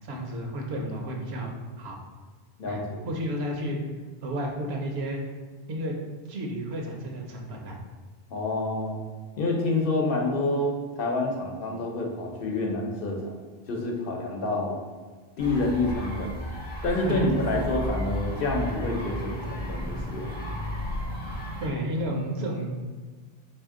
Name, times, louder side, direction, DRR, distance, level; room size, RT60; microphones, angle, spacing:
voice 1, 0.0-1.5 1.8-2.0 2.7-3.8 4.2-5.2 5.7-6.0 6.3-7.8 13.9-14.0 17.1-17.2 21.6-22.8, right 1 dB, 80° right, 1 dB, 0.9 m, -32 dB
voice 2, 2.6-3.0 8.3-9.0 9.4-13.3 13.7-14.8 15.4-16.3 16.8-20.3, left 2 dB, 65° left, 0 dB, 0.8 m, -28 dB
sound 1, 15.4-21.7, equal, 30° left, 0.7 m, -33 dB
3.5 x 2.7 x 3.6 m, 1.4 s
omnidirectional pair, 1.0 m